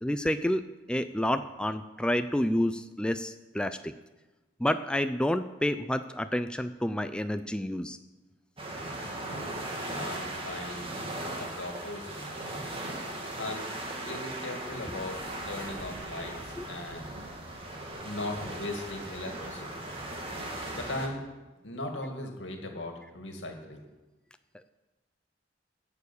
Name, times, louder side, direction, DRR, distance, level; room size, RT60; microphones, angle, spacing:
voice 1, 0.0-3.9 4.6-8.0 16.6-16.7, left 1 dB, 5° left, 9 dB, 0.4 m, -29 dB
sound 1, 8.6-21.1, right 1 dB, 30° right, 2.0 m, -38 dB
voice 2, 9.9-10.8 11.4-12.2 13.3-13.7 14.0-17.1 18.0-19.8 20.7-21.2 21.6-23.8, left 2 dB, 85° left, 3 dB, 2.2 m, -38 dB
11.5 x 7.0 x 8.5 m, 1.1 s
head